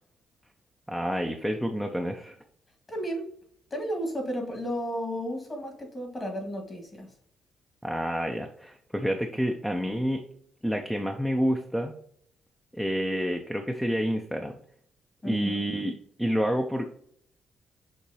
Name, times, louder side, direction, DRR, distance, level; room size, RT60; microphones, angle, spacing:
voice 1, 0.9-2.4 7.8-10.2 10.6-11.9 12.7-14.6 15.2-16.9, equal, ahead, 4 dB, 0.5 m, -28 dB
voice 2, 2.9-3.3 3.7-7.1 15.2-15.6, equal, 30° left, 3 dB, 1.6 m, -33 dB
6.4 x 2.9 x 2.7 m, 0.64 s
cardioid pair, 90°, 0 cm